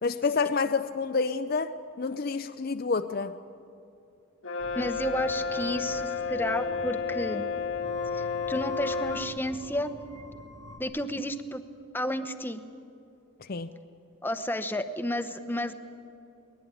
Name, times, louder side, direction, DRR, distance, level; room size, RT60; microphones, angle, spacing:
voice 1, 0.0-3.4 13.4-13.7, left 4 dB, 45° left, 9 dB, 0.5 m, -29 dB
Brass instrument, 4.4-9.3, left 4 dB, 75° left, 1.7 m, -31 dB
sound 1, 4.6-10.8, left 3 dB, 80° right, 2.7 m, -44 dB
voice 2, 4.7-7.4 8.1-9.9 10.8-11.6 11.9-12.6 14.2-15.7, left 1 dB, 10° left, 9 dB, 0.9 m, -31 dB
23.0 x 19.5 x 9.1 m, 2.7 s
head